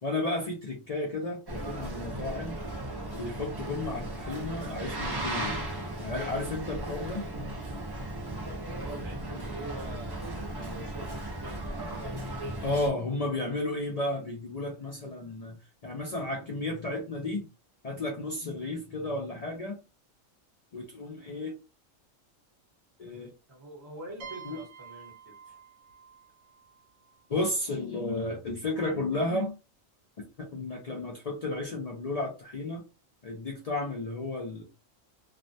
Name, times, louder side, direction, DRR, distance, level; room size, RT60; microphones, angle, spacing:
voice 1, 0.0-2.6 3.1-5.6 6.0-7.3 12.6-15.6 15.8-17.5 17.8-19.8 20.7-21.5 23.0-23.3 24.4-24.6 27.3-29.5 30.4-32.8 33.2-34.6, left 2 dB, 65° left, 0.3 m, -33 dB
Boat Water vehicle, 1.5-12.9, right 1 dB, 40° right, 0.3 m, -36 dB
voice 2, 8.7-11.7 23.5-25.1, right 1 dB, 20° right, 0.9 m, -45 dB
sound 1, 24.2-27.8, right 6 dB, 75° right, 0.9 m, -49 dB
2.4 x 2.1 x 2.6 m
omnidirectional pair, 1.3 m